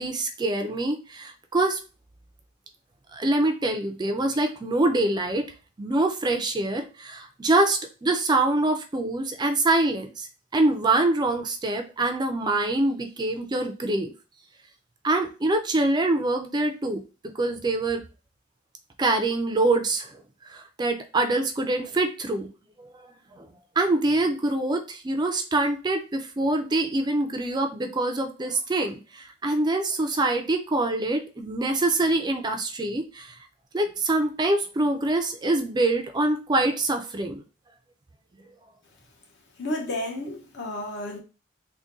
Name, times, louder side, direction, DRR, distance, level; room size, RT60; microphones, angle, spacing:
voice 1, 0.0-1.8 3.1-5.5 5.8-14.1 15.0-17.0 17.4-18.0 19.0-20.1 20.5-22.5 22.8-22.9 23.4-23.5 23.8-33.3 33.7-37.4, right 2 dB, 20° right, 0.4 m, -25 dB
voice 2, 39.6-41.2, left 1 dB, 60° left, 0.9 m, -31 dB
3.6 x 2.2 x 3.8 m
head